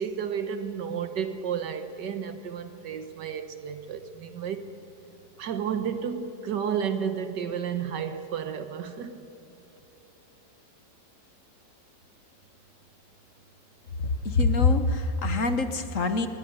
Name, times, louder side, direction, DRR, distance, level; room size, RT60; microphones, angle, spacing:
voice 1, 0.0-4.7 5.4-9.3, right 7 dB, 80° right, 1.8 m, -32 dB
voice 2, 14.0-16.3, left 3 dB, 50° left, 1.4 m, -24 dB
22.5 x 19.0 x 9.6 m
omnidirectional pair, 1.9 m